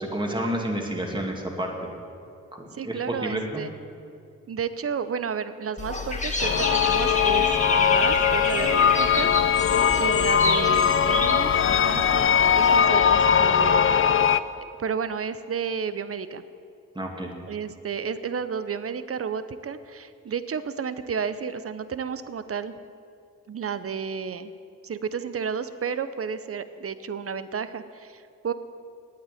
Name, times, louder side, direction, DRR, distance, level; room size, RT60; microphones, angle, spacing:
voice 1, 0.0-1.7 2.5-3.6 17.0-17.3, right 1 dB, 15° right, 0 dB, 2.2 m, -30 dB
voice 2, 2.7-3.7 4.5-7.5 7.8-9.3 9.9-11.5 11.8-12.3 12.5-13.9 14.8-16.4 17.5-22.7 23.5-24.5 24.8-28.5, right 6 dB, 45° right, 12 dB, 0.7 m, -32 dB
Dog / Bird, 5.8-12.8, left 2 dB, 25° left, 2.0 m, -29 dB
sound 1, 6.4-14.4, left 7 dB, 45° left, 0.5 m, -20 dB
8.9 x 8.2 x 9.2 m, 2.5 s
cardioid pair, 50°, 31 cm